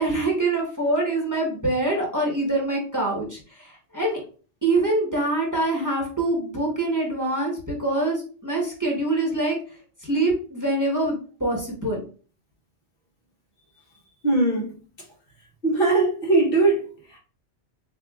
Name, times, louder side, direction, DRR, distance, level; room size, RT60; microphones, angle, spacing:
voice 1, 0.0-4.2 4.6-12.0, right 2 dB, 15° right, 1.1 m, -25 dB
voice 2, 14.2-14.7 15.6-17.2, right 2 dB, 55° left, 1.2 m, -21 dB
7.0 x 2.4 x 2.4 m
omnidirectional pair, 1.2 m